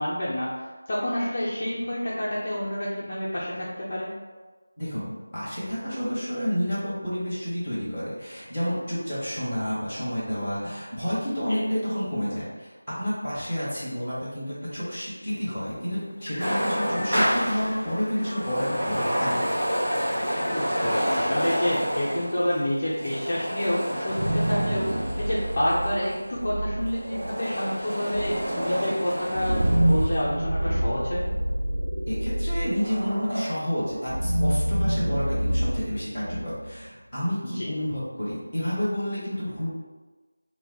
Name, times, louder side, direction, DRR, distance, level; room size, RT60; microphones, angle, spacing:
voice 1, 0.0-4.1 11.5-11.6 20.4-31.3 37.5-37.7, left 1 dB, 30° left, -8 dB, 0.6 m, -28 dB
voice 2, 4.8-19.4 32.1-39.7, equal, 5° right, -12 dB, 1.5 m, -30 dB
sound 1, 15.3-23.9, left 1 dB, 85° left, 0.4 m, -41 dB
sound 2, 16.4-26.2 26.8-30.2, equal, 20° right, 1.2 m, -29 dB
sound 3, 23.9-36.8, right 1 dB, 65° right, 0.5 m, -27 dB
4.0 x 2.2 x 4.0 m, 1.3 s
figure-of-eight pair, 175°, 0 cm